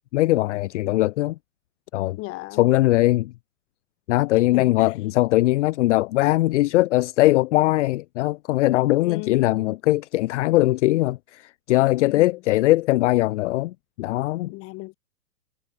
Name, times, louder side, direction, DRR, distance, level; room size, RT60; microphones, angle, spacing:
voice 1, 0.1-1.4 1.9-2.2 2.6-3.3 4.1-14.5, left 17 dB, 50° left, 0.5 m, -21 dB
voice 2, 2.2-2.7 4.5-4.9 8.7-9.8 11.9-12.4 14.5-15.0, left 22 dB, 30° left, 1.1 m, -37 dB
hypercardioid pair, 125°, 46 cm